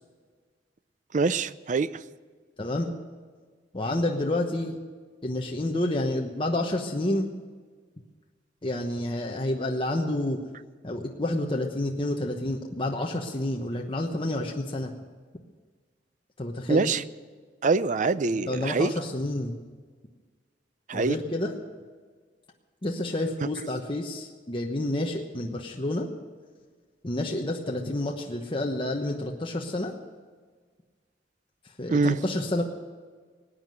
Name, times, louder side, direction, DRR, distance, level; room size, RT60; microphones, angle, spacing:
voice 1, 1.1-1.9 16.7-17.0 17.6-18.9 20.9-21.1 31.9-32.2, right 4 dB, 45° right, 0.5 m, -24 dB
voice 2, 2.6-2.9 3.7-4.8 5.2-7.3 8.6-10.4 10.8-14.9 16.4-16.9 18.3-19.6 20.9-21.5 22.8-26.1 27.0-29.9 31.8-32.6, left 1 dB, 30° left, 1.1 m, -29 dB
19.0 x 9.4 x 7.9 m
head